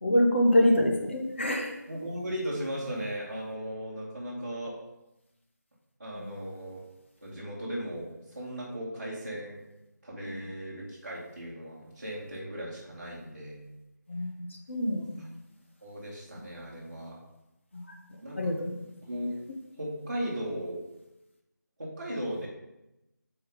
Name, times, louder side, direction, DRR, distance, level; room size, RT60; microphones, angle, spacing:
voice 1, 0.0-1.8 6.2-6.3 14.1-15.2 17.7-17.8 18.4-18.7, left 1 dB, 40° left, 2 dB, 1.0 m, -25 dB
voice 2, 1.9-4.8 6.0-6.8 7.2-8.1 8.3-9.6 10.0-13.6 15.8-17.2 18.2-18.5 19.0-19.3 19.7-20.8 21.8-22.5, equal, 30° right, -10 dB, 1.3 m, -36 dB
7.2 x 4.4 x 3.9 m, 0.94 s
figure-of-eight pair, 180°, 10 cm